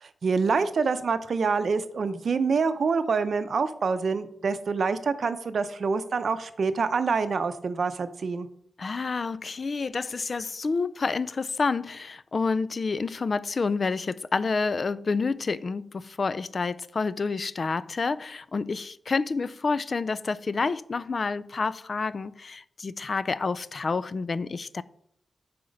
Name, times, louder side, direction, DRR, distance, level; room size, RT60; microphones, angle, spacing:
voice 1, 0.0-8.5, right 5 dB, 65° right, 0.6 m, -26 dB
voice 2, 8.8-24.8, left 4 dB, 45° left, 0.3 m, -29 dB
8.7 x 4.3 x 5.2 m
wide cardioid pair, 105°, 0 cm